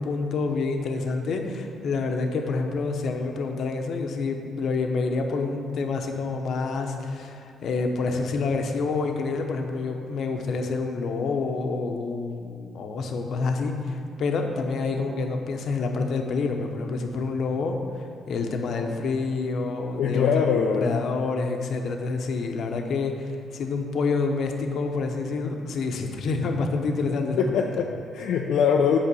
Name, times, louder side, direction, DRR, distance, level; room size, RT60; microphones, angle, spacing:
voice 1, 0.0-20.3 20.7-27.6, left 4 dB, 65° left, 3 dB, 1.0 m, -28 dB
voice 2, 20.0-21.0 27.4-29.0, left 6 dB, 80° left, 0 dB, 0.6 m, -23 dB
8.7 x 5.1 x 7.0 m, 2.6 s
cardioid pair, 90°, 0 cm